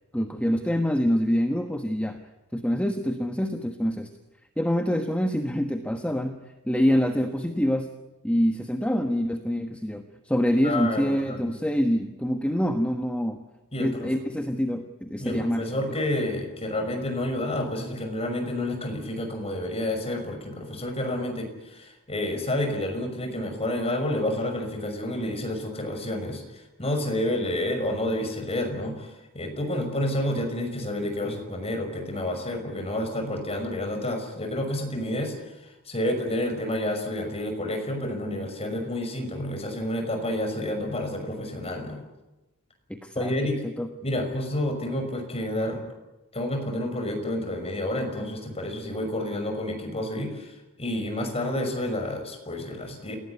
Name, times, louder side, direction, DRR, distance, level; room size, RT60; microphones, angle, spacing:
voice 1, 0.1-2.2 2.5-4.1 4.6-6.3 6.6-7.9 8.2-13.4 13.8-16.0 42.9-43.9, equal, 5° left, 5 dB, 1.3 m, -26 dB
voice 2, 10.6-11.5 13.7-14.1 15.2-35.3 35.9-42.0 43.1-43.6 44.0-45.8 46.3-50.5 50.8-53.2, left 1 dB, 30° left, 4 dB, 5.9 m, -29 dB
28.5 x 18.0 x 9.7 m, 1.0 s
head